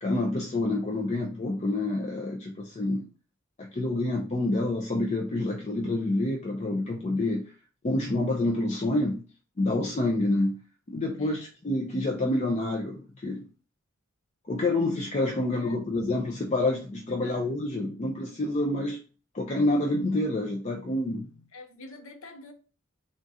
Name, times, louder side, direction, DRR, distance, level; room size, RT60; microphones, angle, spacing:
voice 1, 0.0-3.0 3.6-7.5 7.8-9.2 9.6-10.6 10.9-13.5 14.5-19.0 19.3-21.4, left 2 dB, 35° left, 0.5 m, -28 dB
voice 2, 11.2-11.5 15.5-15.9 17.2-17.4 21.5-22.5, left 3 dB, 75° left, 0.7 m, -46 dB
3.7 x 2.4 x 4.0 m
head